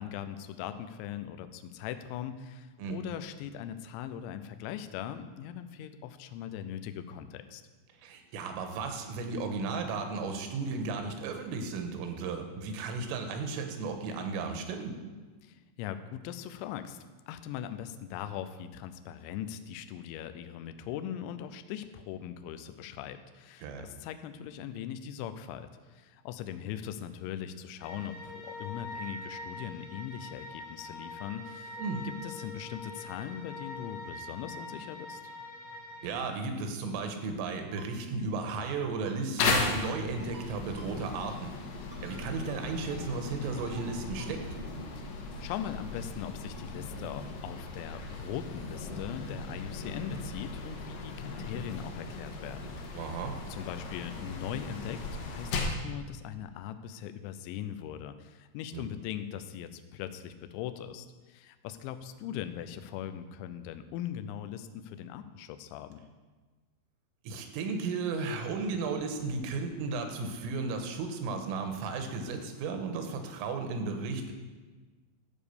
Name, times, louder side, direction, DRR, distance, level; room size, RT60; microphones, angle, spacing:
voice 1, 0.0-7.6 15.4-17.0 17.3-35.2 45.0-53.2 53.5-66.0, left 10 dB, 85° left, 10 dB, 2.7 m, -40 dB
voice 2, 8.0-15.0 23.6-23.9 31.8-32.1 36.0-41.5 42.0-44.4 52.9-53.4 58.7-58.9 67.3-74.3, right 4 dB, 80° right, 5 dB, 3.5 m, -34 dB
sound 1, 27.8-36.1, left 2 dB, 50° left, 2.6 m, -44 dB
Ringtone, 37.8-37.9 38.5-38.8 39.0-39.2 39.5-39.6 40.2-40.5 40.8-40.9 41.2-41.3 41.9-42.2 42.5-42.6 42.9-43.0 43.6-43.9 44.2-44.3, right 3 dB, 55° right, 1.6 m, -51 dB
sound 2, 39.4-55.9, left 3 dB, 70° left, 2.8 m, -37 dB
13.0 x 4.9 x 6.9 m, 1.3 s
omnidirectional pair, 5.9 m